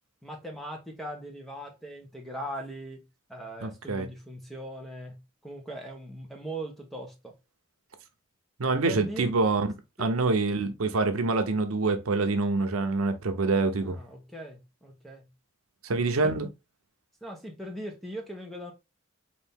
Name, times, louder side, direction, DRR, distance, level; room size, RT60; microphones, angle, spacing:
voice 1, 0.2-3.0 3.3-7.3 8.8-9.3 10.0-10.1 13.7-15.3 16.2-16.3 17.2-18.7, right 1 dB, ahead, 0.8 m, -40 dB
voice 2, 3.6-4.1 8.6-9.7 10.0-14.0 15.8-16.5, right 3 dB, 85° right, 0.7 m, -26 dB
4.1 x 2.7 x 3.5 m
head